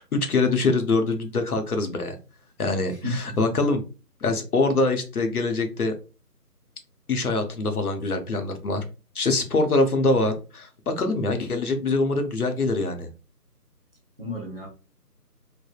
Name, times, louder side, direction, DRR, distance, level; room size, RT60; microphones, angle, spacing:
voice 1, 0.0-2.2 2.6-3.8 4.2-6.0 7.1-8.8 9.1-13.1, left 3 dB, 65° left, 6 dB, 0.7 m, -24 dB
voice 2, 2.9-3.6 14.2-14.7, left 1 dB, 35° right, -1 dB, 0.7 m, -33 dB
3.3 x 2.0 x 2.3 m, 0.32 s
figure-of-eight pair, 160°, 48 cm